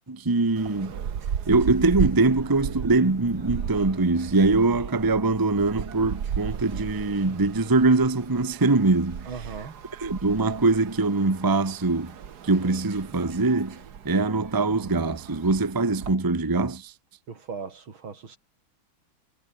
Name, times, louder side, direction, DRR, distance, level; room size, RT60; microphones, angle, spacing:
voice 1, 0.1-1.0 1.5-9.3 10.0-12.1 12.4-16.9, right 3 dB, 15° right, 1.0 m, -23 dB
sound 1, 0.6-16.1, right 8 dB, 55° right, 1.8 m, -35 dB
voice 2, 9.3-9.8 17.3-18.4, right 5 dB, 80° right, 3.9 m, -38 dB
omnidirectional pair, 2.2 m